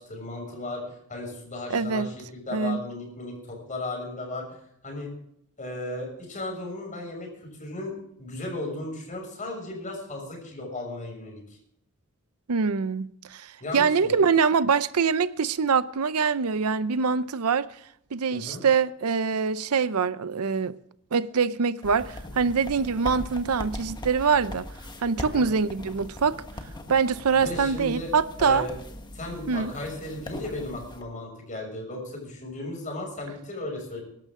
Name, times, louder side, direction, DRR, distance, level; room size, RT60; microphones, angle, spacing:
voice 1, 0.0-5.1 5.6-11.4 13.6-14.3 18.3-18.6 25.2-25.5 27.3-28.1 28.4-28.7 29.1-34.0, left 2 dB, 35° left, 6.5 m, -36 dB
voice 2, 1.7-2.1 2.5-2.8 12.5-17.7 18.1-20.7 21.1-24.7 25.0-26.4 26.9-28.7 29.5-29.7, right 5 dB, 80° right, 0.6 m, -24 dB
sound 1, 21.8-31.0, left 1 dB, 20° left, 1.5 m, -40 dB
24.0 x 12.0 x 3.7 m
head